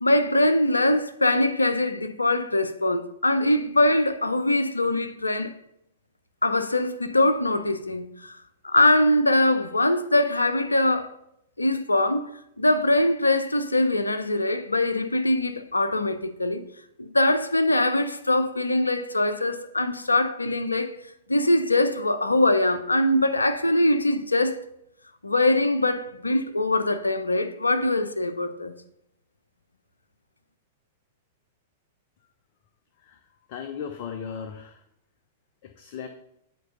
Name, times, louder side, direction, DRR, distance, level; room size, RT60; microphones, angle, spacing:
voice 1, 0.0-5.5 6.4-11.1 11.6-12.3 12.6-16.7 17.0-20.9 21.3-24.6 25.2-28.7, left 1 dB, 85° left, 0.7 m, -22 dB
voice 2, 33.0-34.8 35.6-36.1, left 7 dB, 45° left, 0.8 m, -37 dB
9.3 x 4.7 x 5.5 m
figure-of-eight pair, 100°, 0 cm